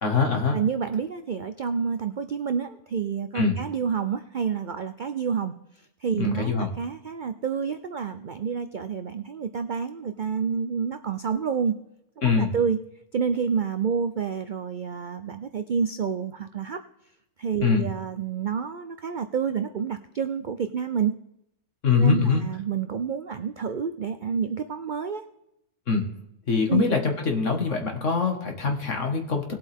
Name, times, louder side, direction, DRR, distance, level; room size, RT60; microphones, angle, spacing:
voice 1, 0.0-0.6 3.3-3.6 6.2-6.7 12.2-12.5 17.6-17.8 21.8-22.4 25.9-26.1 26.5-29.5, left 5 dB, 50° left, 3 dB, 2.1 m, -23 dB
voice 2, 0.5-5.5 6.0-11.8 12.2-12.8 13.1-16.8 17.4-21.1 21.9-25.2 26.7-26.8, right 6 dB, 80° right, 9 dB, 0.4 m, -28 dB
19.5 x 7.9 x 3.6 m, 0.81 s
omnidirectional pair, 1.6 m